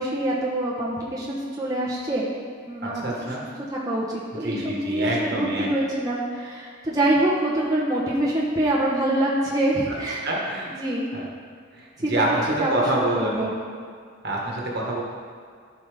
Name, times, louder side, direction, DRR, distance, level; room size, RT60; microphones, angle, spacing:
voice 1, 0.0-2.2 2.7-3.3 3.7-10.3 10.8-11.1 12.0-12.1 12.6-13.5, right 1 dB, 20° right, -6 dB, 1.1 m, -25 dB
voice 2, 2.8-3.4 4.4-5.7 9.9-10.0 10.2-10.7 11.1-11.2 11.8-13.5 14.2-15.0, right 1 dB, 55° right, -3 dB, 1.5 m, -27 dB
12.5 x 5.8 x 3.5 m, 2.1 s
head